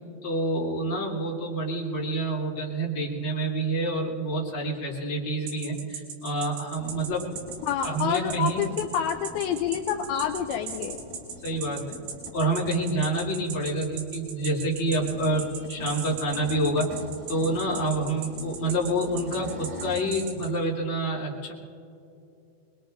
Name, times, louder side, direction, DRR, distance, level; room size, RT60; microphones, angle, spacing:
voice 1, 0.2-7.3 7.8-8.6 11.4-12.0 12.3-17.0 17.3-21.5, right 1 dB, 35° left, -5 dB, 2.7 m, -28 dB
sound 1, 5.5-20.5, right 6 dB, 75° right, 5.0 m, -38 dB
sound 2, 6.7-20.1, left 1 dB, 15° right, 3.0 m, -44 dB
voice 2, 7.7-11.0, left 8 dB, 85° left, 5 dB, 2.3 m, -28 dB
26.0 x 21.0 x 2.5 m, 2.6 s
omnidirectional pair, 5.0 m